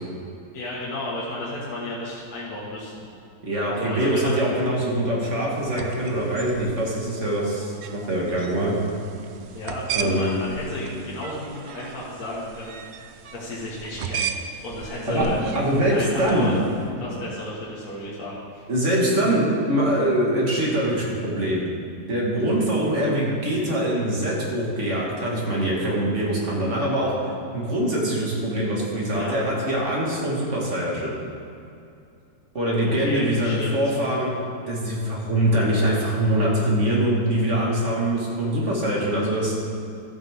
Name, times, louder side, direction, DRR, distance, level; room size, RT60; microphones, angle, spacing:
voice 1, 0.5-3.0 3.8-4.4 9.5-13.1 13.3-14.3 14.6-15.4 15.9-16.6 17.0-18.6 29.1-29.4 32.9-33.9, left 1 dB, 60° left, -8 dB, 2.2 m, -33 dB
voice 2, 3.4-8.7 9.9-10.4 15.1-15.2 15.5-16.5 18.7-21.6 22.1-27.1 27.5-31.1 32.5-34.3 34.7-39.5, right 1 dB, 45° right, -4 dB, 2.0 m, -23 dB
sound 1, 5.5-16.8, right 7 dB, 80° right, 0.6 m, -37 dB
sound 2, 15.2-18.7, right 1 dB, 10° left, 1.4 m, -36 dB
13.0 x 8.7 x 3.6 m, 2.5 s
omnidirectional pair, 1.8 m